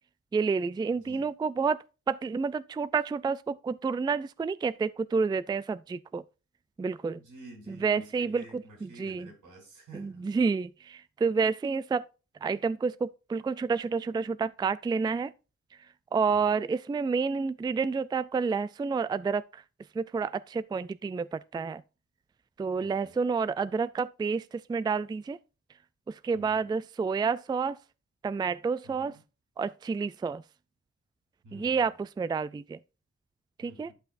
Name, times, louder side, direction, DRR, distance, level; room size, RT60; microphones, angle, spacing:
voice 1, 0.3-6.2 6.8-7.2 7.7-8.4 8.8-9.3 9.9-12.0 12.4-15.3 16.1-19.6 20.0-21.8 22.6-25.4 26.1-27.8 28.2-29.1 29.6-30.4 31.5-32.8 33.6-33.9, right 5 dB, 15° right, 0.3 m, -29 dB
voice 2, 0.9-1.2 7.1-10.3 16.3-16.5 22.8-23.2 26.3-26.7 28.8-29.2 31.4-31.9 33.6-33.9, right 1 dB, 90° right, 3.8 m, -50 dB
11.5 x 5.6 x 2.6 m
cardioid pair, 60°, 30 cm